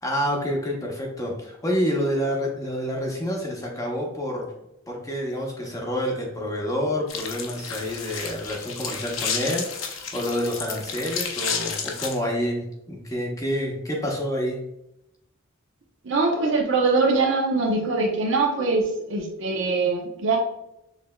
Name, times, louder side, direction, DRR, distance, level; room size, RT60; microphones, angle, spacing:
voice 1, 0.0-4.5 4.9-14.6, equal, 15° left, -1 dB, 0.8 m, -28 dB
sound 1, 7.1-12.1, left 6 dB, 65° left, 0.7 m, -31 dB
voice 2, 16.0-20.4, right 3 dB, 65° right, 1 dB, 0.7 m, -23 dB
6.5 x 3.1 x 2.2 m, 0.84 s
head